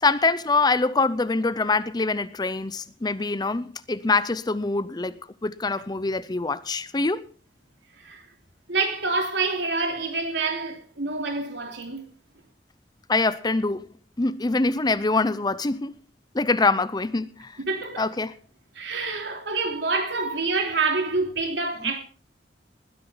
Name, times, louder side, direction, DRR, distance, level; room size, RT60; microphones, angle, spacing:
voice 1, 0.0-5.2 5.4-7.2 13.1-13.9 14.2-15.9 16.3-17.5 18.0-18.3, left 3 dB, 25° left, 0.6 m, -24 dB
voice 2, 8.7-12.0 17.7-18.1 18.7-22.0, right 3 dB, 85° right, 3.2 m, -27 dB
20.0 x 10.5 x 3.9 m
head